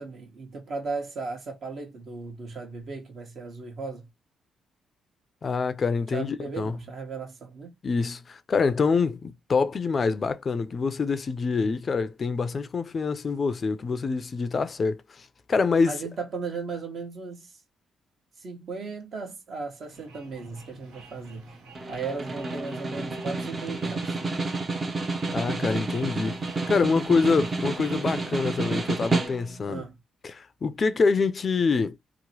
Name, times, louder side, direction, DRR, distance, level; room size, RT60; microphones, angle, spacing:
voice 1, 0.0-4.1 6.1-7.7 15.9-17.6 18.4-21.5 21.9-24.2 29.7-30.0, right 4 dB, 60° right, 1.1 m, -36 dB
voice 2, 5.4-6.7 7.8-15.9 25.3-29.8 30.2-32.0, left 4 dB, 45° left, 0.4 m, -26 dB
sound 1, 19.7-29.3, right 3 dB, 85° right, 0.7 m, -47 dB
Snare drum, 21.7-29.7, right 3 dB, 35° right, 0.6 m, -30 dB
2.9 x 2.0 x 2.8 m
supercardioid pair, 60°, 0 cm